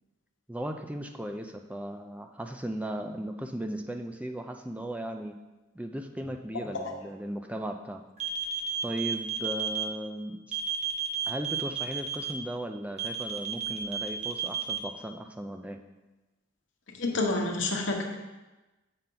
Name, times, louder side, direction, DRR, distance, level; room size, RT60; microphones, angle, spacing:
voice 1, 0.5-5.4 5.7-8.1 8.8-10.6 11.3-15.8, right 1 dB, 5° right, 5 dB, 0.3 m, -36 dB
sound 1, 8.2-9.8 10.5-12.3 13.0-14.8, right 8 dB, 30° right, 0.7 m, -31 dB
voice 2, 17.0-18.0, left 2 dB, 60° left, 1 dB, 1.0 m, -28 dB
7.7 x 5.7 x 3.8 m, 1.1 s
head